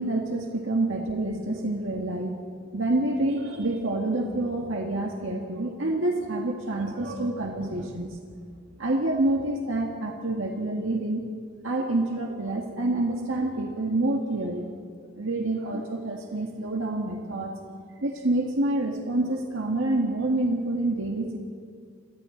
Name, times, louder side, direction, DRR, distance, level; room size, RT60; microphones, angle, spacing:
voice 1, 0.0-2.4 2.7-8.2 8.8-11.2 11.6-14.7 15.2-17.5 18.0-21.4, right 2 dB, 80° right, 1 dB, 1.8 m, -27 dB
29.5 x 23.5 x 3.9 m, 2.2 s
head